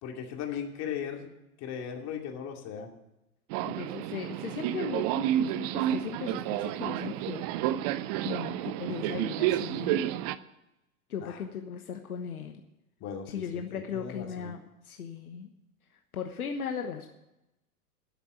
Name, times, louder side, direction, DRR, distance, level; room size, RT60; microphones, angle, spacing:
voice 1, 0.0-1.3 1.6-2.9 11.2-11.4 13.0-14.5, left 8 dB, 35° left, 2 dB, 2.5 m, -38 dB
Subway metro underground, 3.5-10.4, right 13 dB, 30° right, 0.4 m, -30 dB
voice 2, 3.6-7.4 8.2-10.1 11.1-12.6 13.3-15.5 16.1-17.1, left 7 dB, 75° left, 5 dB, 1.2 m, -37 dB
12.5 x 7.2 x 9.2 m, 0.92 s
figure-of-eight pair, 95°, 45 cm